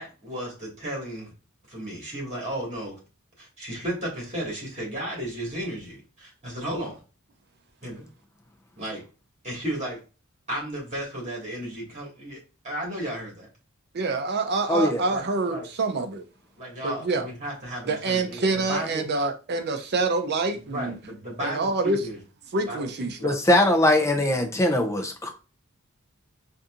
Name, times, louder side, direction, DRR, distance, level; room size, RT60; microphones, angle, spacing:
voice 1, 0.0-1.3 1.7-3.0 3.4-7.0 7.8-8.1 8.8-9.0 9.4-10.0 10.5-12.4 12.6-13.5 15.1-15.7 16.6-19.1 20.5-22.2 22.6-23.3, right 1 dB, 35° right, 1.8 m, -34 dB
voice 2, 13.9-16.2 16.8-17.3 17.9-21.0 21.4-22.0 22.5-23.4, right 3 dB, 50° right, 0.6 m, -26 dB
voice 3, 14.7-15.0 23.2-25.3, left 1 dB, 15° left, 0.6 m, -21 dB
4.0 x 2.7 x 2.5 m
head